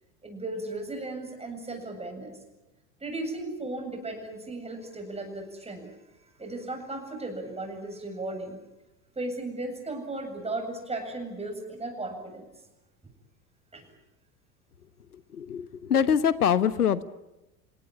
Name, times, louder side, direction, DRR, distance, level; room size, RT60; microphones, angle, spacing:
voice 1, 0.2-2.4 3.0-5.9 6.4-8.6 9.2-12.4 13.7-13.9, right 2 dB, 15° right, 4 dB, 7.9 m, -36 dB
voice 2, 15.1-17.0, left 8 dB, 80° left, 16 dB, 1.3 m, -24 dB
29.5 x 17.5 x 10.0 m, 0.97 s
figure-of-eight pair, 80°, 45 cm